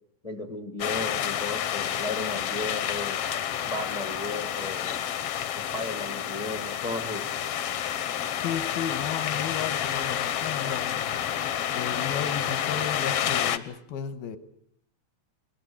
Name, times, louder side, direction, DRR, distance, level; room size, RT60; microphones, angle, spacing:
voice 1, 0.2-3.2 3.6-5.0 5.5-7.3, left 2 dB, 55° left, 2 dB, 0.4 m, -35 dB
sound 1, 0.8-13.6, left 10 dB, 70° left, 1.5 m, -29 dB
voice 2, 8.3-11.0 11.7-14.4, left 8 dB, 85° left, 11 dB, 3.1 m, -34 dB
21.5 x 21.0 x 8.6 m, 0.69 s
omnidirectional pair, 4.2 m